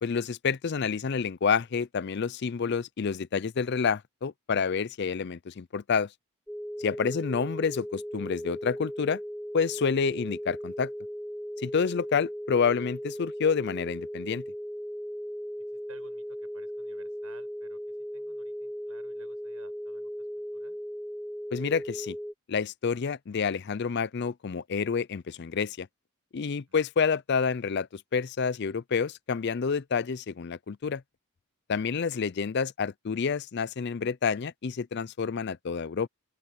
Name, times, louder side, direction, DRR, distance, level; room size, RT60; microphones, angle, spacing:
voice 1, 0.0-6.1 6.8-9.2 9.5-10.9 11.6-14.4 21.5-22.2 22.5-25.9 26.3-31.0 31.7-36.1, left 5 dB, 50° left, 0.4 m, -28 dB
sound 1, 6.5-22.3, equal, ahead, 0.6 m, -37 dB
voice 2, 15.7-20.8 26.7-26.8, right 3 dB, 80° right, 5.9 m, -57 dB
open air
head